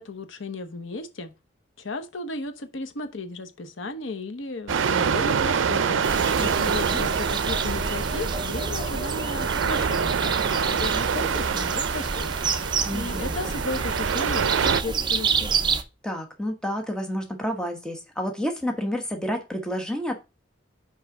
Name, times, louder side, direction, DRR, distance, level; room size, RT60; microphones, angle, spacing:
voice 1, 0.0-1.3 1.8-6.0 6.5-12.3 12.9-15.5, left 2 dB, 80° left, 1.0 m, -34 dB
sound 1, 4.7-14.8, right 6 dB, 80° right, 0.5 m, -26 dB
sound 2, 6.0-15.8, right 5 dB, 25° right, 0.6 m, -29 dB
voice 2, 6.4-7.0 12.8-13.3 16.0-20.2, equal, 5° left, 1.1 m, -30 dB
5.5 x 4.9 x 5.9 m
head